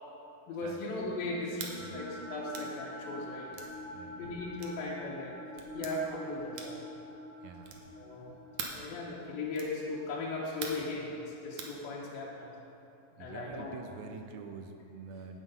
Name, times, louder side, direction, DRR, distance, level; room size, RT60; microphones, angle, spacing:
voice 1, 0.5-3.5 4.2-5.3 5.6-6.8 8.0-8.4 8.7-12.5 13.2-13.8, left 2 dB, 85° left, -4 dB, 2.9 m, -38 dB
sound 1, 1.2-11.4, equal, 70° left, 2.7 m, -46 dB
sound 2, 1.5-1.8 2.5-2.7 3.5-3.7 4.6-4.8 5.6-6.0 6.5-6.9 7.6-7.9 8.6-8.9 9.5-9.8 10.6-10.9 11.6-11.8, right 5 dB, 65° right, 2.2 m, -42 dB
voice 2, 1.8-2.1 3.9-4.2 7.4-7.8 13.1-15.4, right 5 dB, 85° right, 5 dB, 1.7 m, -46 dB
9.3 x 9.1 x 5.4 m, 2.8 s
omnidirectional pair, 4.0 m